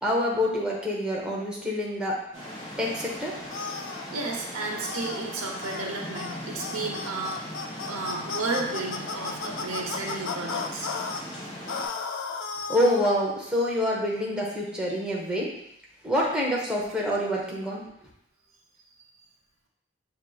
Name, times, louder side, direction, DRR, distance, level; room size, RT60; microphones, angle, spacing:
voice 1, 0.0-2.2 2.8-3.3 12.7-15.5 16.0-17.9, left 1 dB, 5° right, -4 dB, 0.6 m, -26 dB
sound 1, 2.3-11.9, equal, 30° left, 1.2 m, -39 dB
sound 2, 3.5-4.0 4.8-5.2 5.6-5.9 6.1-6.3 6.6-11.2 11.7-13.1, left 5 dB, 65° left, 0.3 m, -34 dB
voice 2, 3.8-7.5 7.9-10.9, right 3 dB, 85° right, 0 dB, 0.8 m, -33 dB
6.3 x 2.8 x 2.3 m, 0.79 s
head